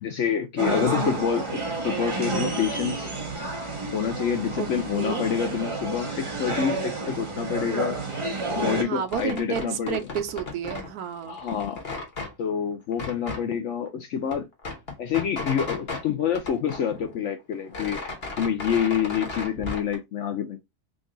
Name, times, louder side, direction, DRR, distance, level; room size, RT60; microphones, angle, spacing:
voice 1, 0.0-3.1 3.9-8.0 8.5-10.0 11.3-11.8 12.4-14.5 15.0-18.0 18.4-20.6, left 8 dB, 65° left, 0.7 m, -27 dB
sound 1, 0.6-8.8, right 3 dB, 25° right, 0.8 m, -30 dB
voice 2, 4.9-5.2 8.8-11.4, right 9 dB, 75° right, 1.1 m, -31 dB
sound 2, 9.0-10.9 11.2-12.3 12.9-13.4 13.9-14.0 14.2-16.0 16.3-17.2 17.5-19.9, left 3 dB, 40° left, 1.2 m, -35 dB
3.8 x 2.4 x 3.7 m
omnidirectional pair, 1.7 m